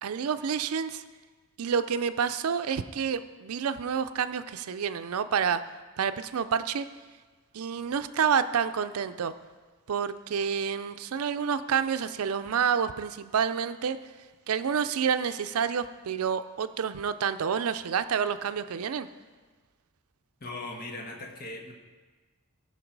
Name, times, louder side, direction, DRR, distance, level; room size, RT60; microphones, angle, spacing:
voice 1, 0.0-1.0 1.6-5.6 6.0-6.8 7.5-9.3 9.9-14.0 14.5-19.1, right 7 dB, 85° right, 12 dB, 0.5 m, -28 dB
voice 2, 20.4-21.7, left 2 dB, 45° left, 1 dB, 1.4 m, -39 dB
17.0 x 5.8 x 4.7 m, 1.3 s
head